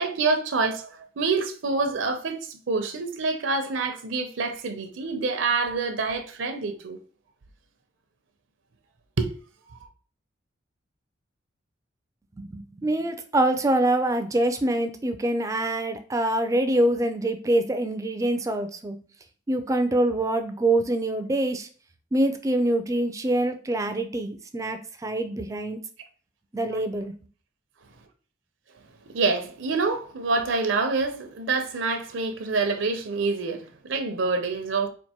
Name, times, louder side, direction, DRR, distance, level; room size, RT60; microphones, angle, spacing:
voice 1, 0.0-7.0 9.2-9.3 9.7-9.9 26.7-26.8 29.1-34.9, right 4 dB, 80° right, 0.6 m, -27 dB
voice 2, 12.4-19.0 19.5-21.7 22.1-25.8 26.5-27.1, right 1 dB, 15° right, 0.3 m, -25 dB
4.4 x 2.5 x 2.8 m
head